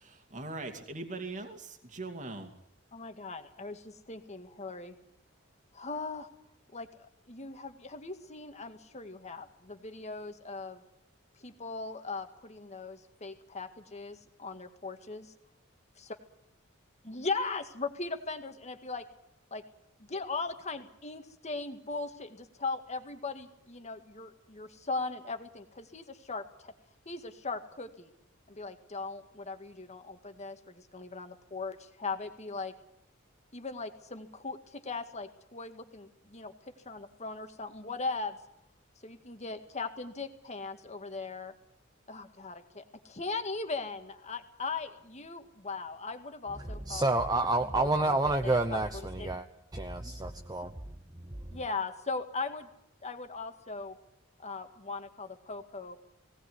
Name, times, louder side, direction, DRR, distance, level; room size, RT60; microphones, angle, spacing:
voice 1, 0.0-2.5, right 2 dB, 40° right, 2.5 m, -41 dB
voice 2, 2.9-5.0 5.7-6.3 6.7-10.8 11.4-15.3 17.0-19.1 19.5-19.6 20.0-26.7 27.1-28.1 28.5-32.7 33.5-38.4 39.0-41.5 42.1-47.0 47.7-48.8 49.2-49.3 51.5-52.7 53.0-54.0 54.4-56.0, left 3 dB, 35° left, 1.9 m, -39 dB
voice 3, 46.6-49.5 49.7-50.7 51.2-51.5, right 2 dB, 20° right, 1.0 m, -29 dB
19.5 x 18.0 x 9.7 m
head